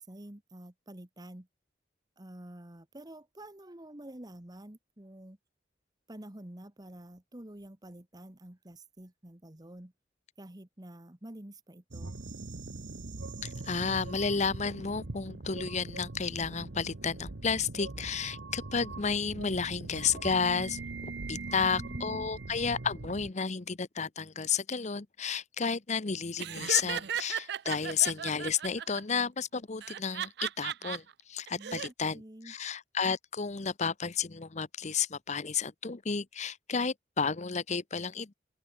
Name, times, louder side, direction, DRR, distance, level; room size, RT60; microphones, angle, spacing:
voice 1, 0.0-1.5 2.2-5.4 6.1-9.9 10.4-12.1 21.3-22.3 31.5-32.5, right 1 dB, 20° right, 1.4 m, -48 dB
sound 1, 11.9-23.3, right 2 dB, 90° right, 1.2 m, -41 dB
voice 2, 13.4-32.2 32.5-38.3, left 6 dB, 40° left, 0.9 m, -32 dB
Laughter, 26.4-29.0 29.8-31.0 31.5-31.9, right 9 dB, 60° right, 0.5 m, -36 dB
open air
head